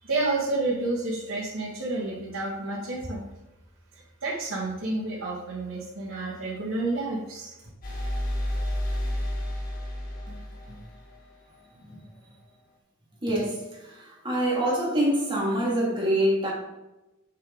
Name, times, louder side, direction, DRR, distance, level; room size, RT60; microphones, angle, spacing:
voice 1, 0.0-3.2 3.9-7.5, right 2 dB, 65° right, -6 dB, 2.1 m, -30 dB
sound 1, 7.8-11.6, left 1 dB, 45° left, 2.2 m, -31 dB
voice 2, 13.2-16.5, right 1 dB, 25° right, -4 dB, 2.7 m, -26 dB
8.0 x 6.8 x 4.0 m, 0.97 s
head